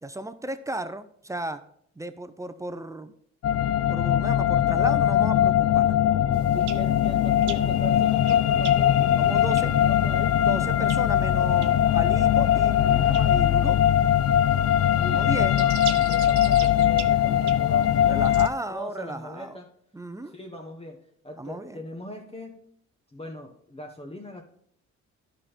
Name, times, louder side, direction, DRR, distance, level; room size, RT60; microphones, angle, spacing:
voice 1, 0.0-1.6 2.0-3.1 3.9-5.9 9.2-9.7 10.5-13.8 15.1-15.6 18.1-19.6 19.9-20.3 21.4-21.8, right 2 dB, 10° right, 11 dB, 0.5 m, -35 dB
sound 1, 3.4-18.5, left 11 dB, 50° left, 0.5 m, -21 dB
sound 2, 6.3-18.5, right 11 dB, 80° right, 0.7 m, -43 dB
voice 2, 6.5-10.5 15.0-19.7 20.2-22.6 23.1-24.4, left 1 dB, 20° left, 2 dB, 1.0 m, -41 dB
11.0 x 5.1 x 4.4 m, 0.66 s
cardioid pair, 90°, 30 cm